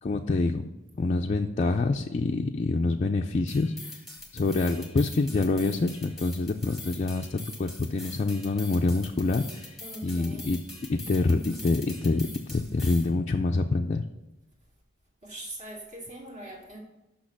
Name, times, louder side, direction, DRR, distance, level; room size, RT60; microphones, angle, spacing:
voice 1, 0.0-0.7 1.0-3.7 4.3-9.7 10.0-10.6 10.9-14.0, left 3 dB, 35° left, 2 dB, 0.4 m, -26 dB
sound 1, 3.5-13.1, left 2 dB, ahead, 1.4 m, -44 dB
voice 2, 9.8-10.5 15.2-16.8, right 1 dB, 35° right, 0 dB, 2.0 m, -42 dB
6.4 x 5.9 x 6.0 m, 0.97 s
head